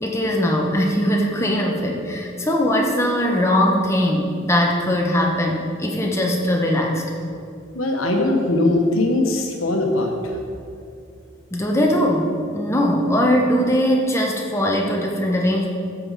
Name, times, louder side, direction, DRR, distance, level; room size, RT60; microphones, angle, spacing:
voice 1, 0.0-7.0 11.5-15.7, equal, 15° left, 0 dB, 1.0 m, -20 dB
voice 2, 7.7-10.1, left 2 dB, 70° left, 2 dB, 1.2 m, -20 dB
11.0 x 7.6 x 4.1 m, 2.5 s
head